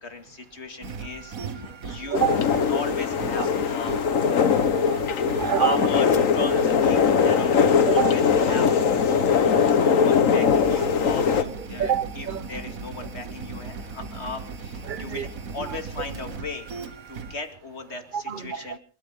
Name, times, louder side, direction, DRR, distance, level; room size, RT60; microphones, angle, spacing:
voice 1, 0.0-4.0 5.6-18.8, left 3 dB, 50° left, 2.5 m, -37 dB
sound 1, 0.8-17.3, right 4 dB, 80° right, 1.8 m, -38 dB
sound 2, 2.1-11.4, left 6 dB, 65° left, 1.5 m, -21 dB
voice 2, 4.6-5.7 7.9-8.1 11.8-12.4 14.9-15.2 18.1-18.8, right 8 dB, 40° right, 1.0 m, -27 dB
27.0 x 13.0 x 3.7 m
omnidirectional pair, 1.5 m